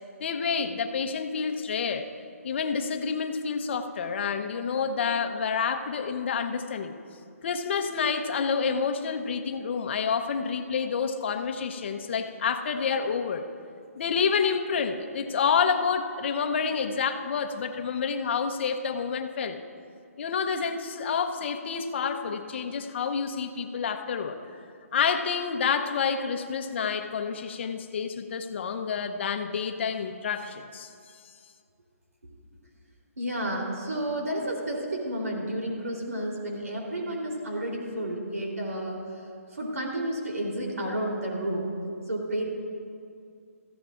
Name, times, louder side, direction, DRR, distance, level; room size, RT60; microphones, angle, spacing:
voice 1, 0.2-2.1 2.4-6.9 7.4-13.4 14.0-19.6 20.2-24.4 24.9-30.9, left 6 dB, 45° left, 6 dB, 0.9 m, -28 dB
voice 2, 33.2-39.0 39.5-41.7 42.1-42.4, right 1 dB, 85° right, -2 dB, 3.5 m, -31 dB
21.0 x 14.5 x 2.5 m, 2.3 s
hypercardioid pair, 150°, 8 cm